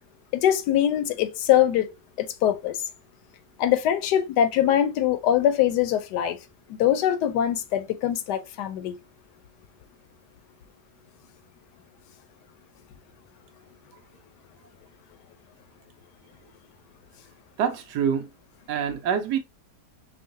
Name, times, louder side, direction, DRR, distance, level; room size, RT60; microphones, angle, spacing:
voice 1, 0.3-1.9 2.2-2.8 3.6-6.4 6.7-8.9, left 10 dB, 75° left, 1.1 m, -23 dB
voice 2, 17.6-18.3 18.7-19.4, right 8 dB, 75° right, 1.2 m, -25 dB
5.5 x 2.3 x 2.5 m
omnidirectional pair, 1.8 m